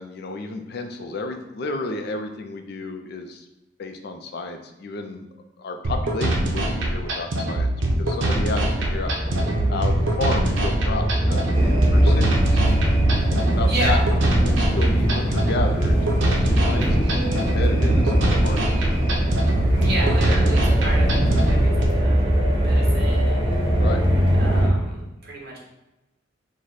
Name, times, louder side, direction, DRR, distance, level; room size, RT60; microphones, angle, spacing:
voice 1, 0.0-3.5 3.8-5.3 5.6-7.7 8.0-9.2 9.7-12.6 13.3-14.0 14.3-19.0 23.8-24.0, left 3 dB, 55° left, 5 dB, 0.4 m, -31 dB
sound 1, 5.8-21.8, right 1 dB, 75° right, 0.7 m, -24 dB
sound 2, 8.4-24.7, right 1 dB, 25° right, 0.7 m, -22 dB
sound 3, 11.5-21.7, equal, 15° left, 0.8 m, -27 dB
voice 2, 13.6-14.0 19.7-23.7 24.4-25.6, right 1 dB, 55° right, -3 dB, 1.2 m, -31 dB
4.8 x 2.1 x 4.0 m, 0.96 s
head